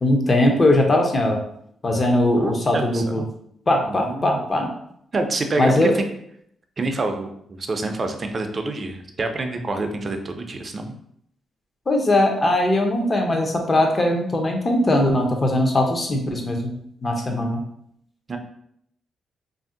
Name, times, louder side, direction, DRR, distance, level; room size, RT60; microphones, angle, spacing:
voice 1, 0.0-1.4 1.8-3.2 3.7-4.7 5.6-5.9 11.9-16.7 17.0-17.6, left 1 dB, 30° left, 2 dB, 0.6 m, -20 dB
voice 2, 2.4-3.2 3.9-4.4 5.1-6.0 6.8-10.9 17.3-17.5 18.3-18.4, right 2 dB, 40° right, 5 dB, 0.4 m, -27 dB
2.6 x 2.1 x 3.6 m, 0.71 s
cardioid pair, 85°, 0 cm